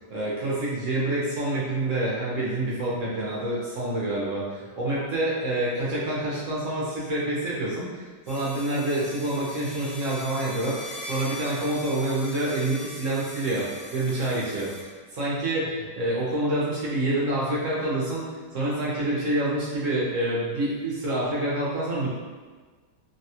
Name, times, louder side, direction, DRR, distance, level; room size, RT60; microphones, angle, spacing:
voice 1, 0.1-13.7 13.9-18.2 18.5-22.1, right 1 dB, 60° right, -7 dB, 0.9 m, -27 dB
sound 1, 8.3-14.8, left 1 dB, 85° left, 1.4 m, -41 dB
3.2 x 2.2 x 2.7 m, 1.4 s
omnidirectional pair, 2.0 m